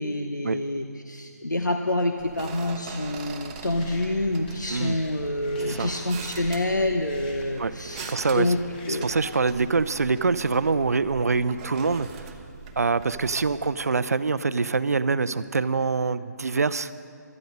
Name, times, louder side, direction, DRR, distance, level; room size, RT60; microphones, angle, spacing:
voice 1, 0.0-8.6 8.9-9.1, left 1 dB, 85° left, 5 dB, 0.9 m, -27 dB
sound 1, 2.2-13.9, right 5 dB, 20° right, 0.9 m, -42 dB
sound 2, 3.1-8.9, left 2 dB, 30° left, 2.4 m, -47 dB
voice 2, 5.6-5.9 7.6-7.7 8.0-8.5 8.9-12.3 12.8-16.9, right 4 dB, 60° right, 14 dB, 0.6 m, -25 dB
18.0 x 13.0 x 5.4 m, 2.4 s
figure-of-eight pair, 150°, 10 cm